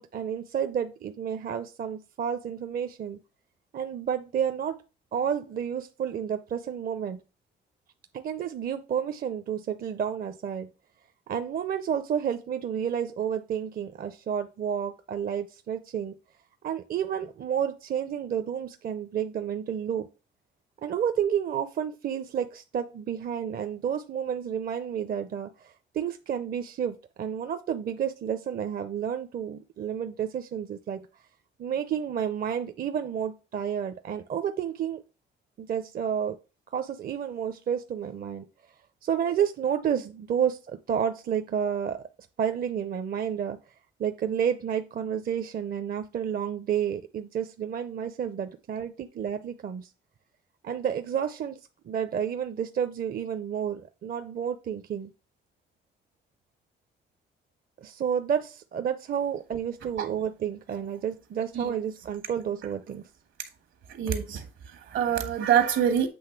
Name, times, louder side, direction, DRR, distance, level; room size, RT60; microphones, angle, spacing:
voice 1, 0.0-3.2 3.7-4.8 5.1-7.2 8.1-10.7 11.3-16.2 16.6-20.1 20.8-31.1 31.6-35.0 35.6-36.4 36.7-38.4 39.0-42.0 42.4-43.6 44.0-49.9 50.6-51.6 51.9-55.1 57.8-63.1, right 8 dB, 50° right, 0.6 m, -30 dB
voice 2, 63.9-66.1, right 9 dB, 75° right, 1.6 m, -26 dB
7.9 x 3.2 x 5.8 m
cardioid pair, 90°, 20 cm